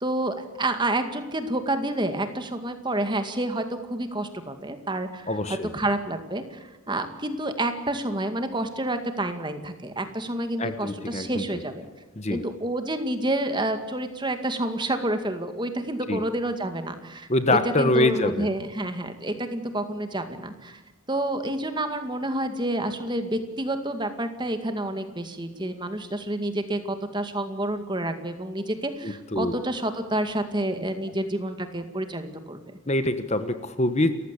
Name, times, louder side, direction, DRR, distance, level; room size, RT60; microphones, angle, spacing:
voice 1, 0.0-11.9 12.3-20.8 21.1-32.6, right 1 dB, 20° right, 8 dB, 2.2 m, -29 dB
voice 2, 5.3-5.7 10.6-11.4 12.2-12.4 16.1-16.2 17.3-18.5 29.0-29.6 32.9-34.1, left 2 dB, 30° left, 10 dB, 1.2 m, -24 dB
30.0 x 15.0 x 8.5 m, 1.1 s
head